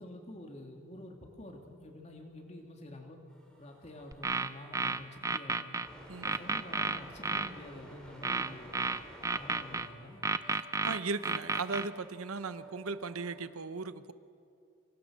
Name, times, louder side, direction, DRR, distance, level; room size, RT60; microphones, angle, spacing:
voice 1, 0.0-3.2 3.6-5.7 6.1-8.8 9.3-10.2, left 1 dB, 30° left, 2 dB, 2.9 m, -48 dB
sound 1, 3.3-13.5, right 1 dB, 5° left, 4.7 m, -54 dB
sound 2, 4.1-5.9 6.2-7.5 8.2-9.9 10.2-11.9, right 3 dB, 15° right, 0.6 m, -32 dB
voice 2, 10.8-14.1, right 4 dB, 85° right, 12 dB, 0.9 m, -37 dB
25.5 x 25.5 x 6.5 m, 2.5 s
head